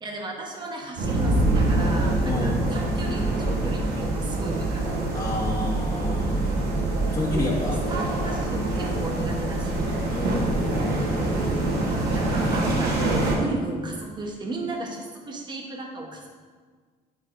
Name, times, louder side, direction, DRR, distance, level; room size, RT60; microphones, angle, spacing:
voice 1, 0.0-4.9 7.7-10.1 12.1-16.3, right 2 dB, 25° right, 0 dB, 1.0 m, -35 dB
sound 1, 1.0-13.4, right 2 dB, 70° right, 1.3 m, -25 dB
voice 2, 2.3-2.6 5.1-6.5 7.1-7.8 10.1-10.9, left 2 dB, 20° left, -3 dB, 1.6 m, -29 dB
9.6 x 4.9 x 2.6 m, 1.5 s
cardioid pair, 110°, 17 cm